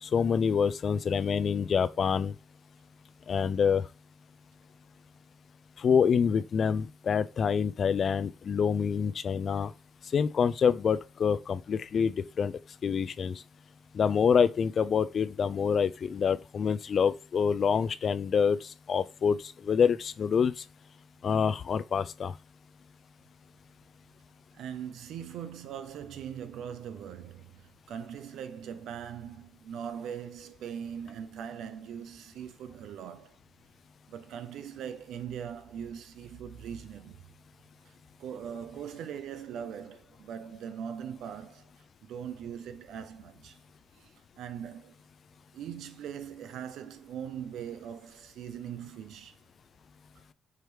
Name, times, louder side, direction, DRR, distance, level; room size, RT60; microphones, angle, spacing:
voice 1, 0.0-2.3 3.3-3.8 5.8-9.7 10.1-12.5 12.8-13.4 13.9-20.6 21.2-22.3, left 6 dB, 50° left, 0.3 m, -26 dB
voice 2, 24.5-33.4 34.1-37.2 37.9-38.0 38.2-43.6 43.9-44.9 45.5-49.4, right 8 dB, 80° right, 0.6 m, -41 dB
4.8 x 2.9 x 3.2 m
cardioid pair, 90°, 0 cm